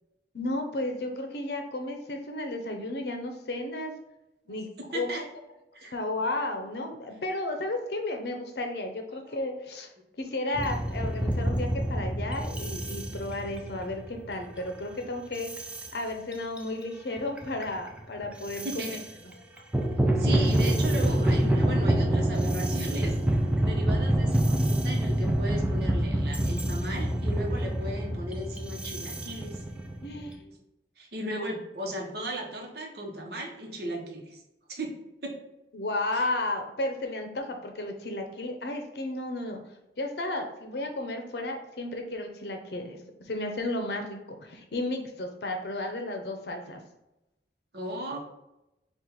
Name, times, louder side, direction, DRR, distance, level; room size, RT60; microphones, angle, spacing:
voice 1, 0.3-3.9 4.5-5.3 5.9-9.9 10.2-15.5 15.9-19.0 30.0-30.4 35.7-39.6 40.0-43.0 43.2-46.8, left 2 dB, 70° left, 4 dB, 0.6 m, -33 dB
sound 1, 10.5-14.8 15.3-15.9 16.3-16.7 17.2-19.0 19.6-30.3, right 1 dB, 5° right, 0.3 m, -27 dB
voice 2, 18.6-19.0 19.3-19.7 20.2-23.1 23.6-29.6 30.3-30.5 31.0-34.4 34.7-34.9 35.2-35.3 36.1-36.2 47.7-48.2, right 1 dB, 65° right, 0 dB, 0.9 m, -36 dB
4.3 x 2.4 x 3.9 m, 0.90 s
head